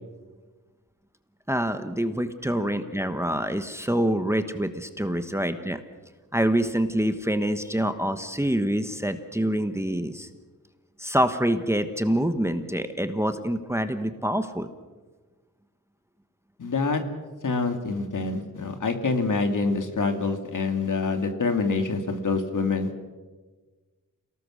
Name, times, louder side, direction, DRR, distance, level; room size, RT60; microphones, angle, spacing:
voice 1, 1.5-5.8 6.3-10.3 11.0-14.7, right 1 dB, 10° right, 9 dB, 1.2 m, -26 dB
voice 2, 16.6-17.0 17.4-22.9, left 4 dB, 60° left, 6 dB, 2.6 m, -26 dB
28.5 x 18.5 x 6.5 m, 1.3 s
wide cardioid pair, 115°, 34 cm